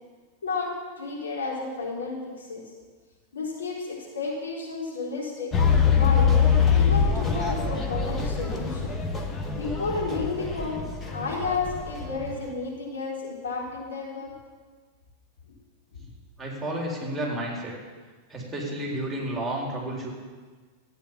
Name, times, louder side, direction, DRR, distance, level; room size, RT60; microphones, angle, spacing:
voice 1, 0.4-2.7 3.3-6.3 6.7-8.9 9.6-10.9 11.1-14.3 15.9-16.1, left 4 dB, 70° left, -4 dB, 4.1 m, -32 dB
sound 1, 5.5-12.5, left 6 dB, 20° left, 1.7 m, -24 dB
voice 2, 16.4-17.7 18.3-20.1, right 1 dB, 10° right, -3 dB, 4.1 m, -31 dB
14.0 x 9.4 x 7.4 m, 1.4 s
figure-of-eight pair, 90°, 0 cm